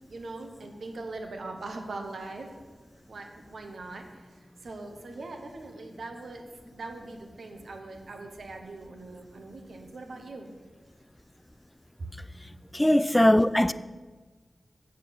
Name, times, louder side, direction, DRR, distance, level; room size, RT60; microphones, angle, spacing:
voice 1, 0.0-2.5 3.1-6.4 6.7-10.5, right 2 dB, 80° right, 1.1 m, -41 dB
voice 2, 12.7-13.7, left 1 dB, 15° left, 0.4 m, -20 dB
7.5 x 6.6 x 7.4 m
cardioid pair, 45°, 0 cm